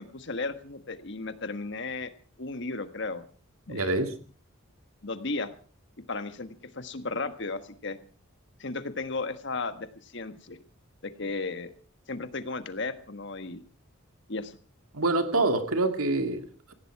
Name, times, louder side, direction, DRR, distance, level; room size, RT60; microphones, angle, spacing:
voice 1, 0.0-2.1 2.4-3.2 3.7-4.0 5.0-5.5 6.1-8.0 8.6-10.6 11.0-11.7 12.1-13.6 14.3-14.6, left 3 dB, 55° left, 10 dB, 1.5 m, -35 dB
voice 2, 3.7-4.1 14.9-16.7, right 2 dB, 90° right, 7 dB, 2.3 m, -26 dB
18.0 x 16.0 x 4.7 m, 0.41 s
head